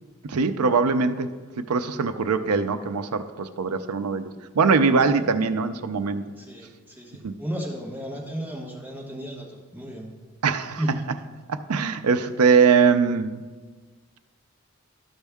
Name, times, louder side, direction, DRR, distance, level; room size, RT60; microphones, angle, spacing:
voice 1, 0.2-6.2 7.2-7.3 10.4-10.8 11.5-13.4, right 5 dB, 90° right, 11 dB, 0.5 m, -22 dB
voice 2, 6.4-10.1 10.8-11.0, equal, 10° right, -4 dB, 1.3 m, -34 dB
13.0 x 5.3 x 3.5 m, 1.4 s
head